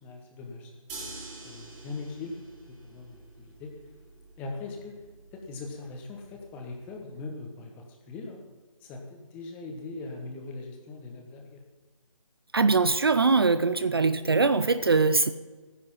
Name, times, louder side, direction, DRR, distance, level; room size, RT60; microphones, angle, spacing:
voice 1, 0.0-0.7 1.1-1.2 1.4-2.3 2.8-3.7 4.4-5.0 5.3-8.4 8.8-11.6, left 3 dB, 10° left, 2 dB, 1.1 m, -40 dB
sound 1, 0.9-6.9, right 3 dB, 15° right, 2.5 m, -47 dB
voice 2, 12.5-15.3, right 4 dB, 45° right, 12 dB, 0.5 m, -22 dB
15.0 x 10.0 x 5.6 m, 1.3 s
figure-of-eight pair, 150°, 18 cm